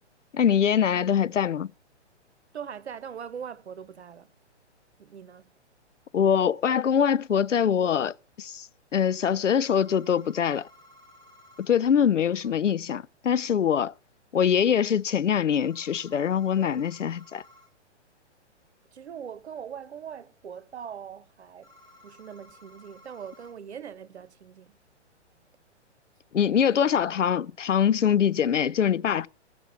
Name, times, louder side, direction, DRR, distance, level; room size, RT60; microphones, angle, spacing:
voice 1, 0.3-1.7 6.1-8.7 8.9-10.7 11.6-13.9 14.3-17.4 26.3-29.3, left 8 dB, 90° left, 0.5 m, -23 dB
voice 2, 2.5-4.3 5.0-5.4 12.0-12.1 12.4-12.5 18.9-21.7 22.0-24.8 26.6-26.9, right 8 dB, 65° right, 1.1 m, -41 dB
sound 1, 9.6-11.7 15.6-17.7 21.6-23.5, left 1 dB, 35° left, 4.8 m, -55 dB
16.0 x 6.0 x 5.7 m
figure-of-eight pair, 125°, 36 cm